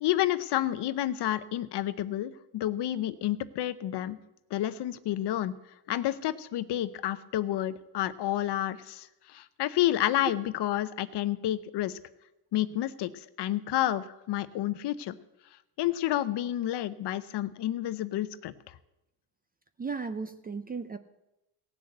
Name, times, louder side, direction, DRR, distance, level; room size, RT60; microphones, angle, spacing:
voice 1, 0.0-4.2 4.5-5.5 5.9-9.1 9.3-12.0 12.5-13.1 13.4-15.2 15.8-18.5, left 13 dB, 55° left, 14 dB, 0.8 m, -30 dB
voice 2, 19.8-21.0, right 4 dB, 20° right, 11 dB, 0.5 m, -35 dB
17.0 x 6.6 x 7.9 m, 0.92 s
cardioid pair, 130°, 49 cm